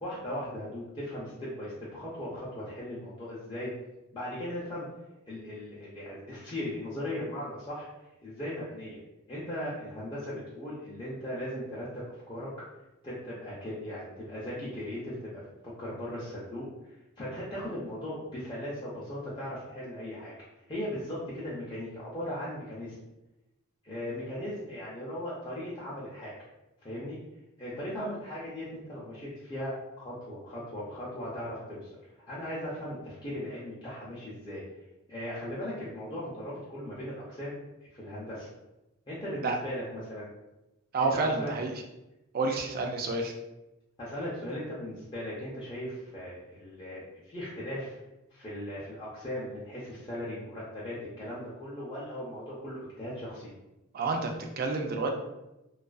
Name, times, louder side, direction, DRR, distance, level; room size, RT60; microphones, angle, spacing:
voice 1, 0.0-3.7 4.1-4.9 5.3-7.9 8.2-9.0 9.3-12.0 12.3-12.5 13.0-15.4 15.8-20.3 20.7-23.0 23.8-26.3 26.8-27.2 27.6-31.9 32.3-34.6 35.1-38.5 39.1-40.3 41.0-41.5 44.0-48.0 48.3-53.5, left 1 dB, 20° left, -9 dB, 0.5 m, -38 dB
voice 2, 40.9-41.7 42.3-43.3 53.9-55.1, right 3 dB, 45° right, 3 dB, 0.3 m, -29 dB
2.3 x 2.3 x 2.3 m, 0.96 s
head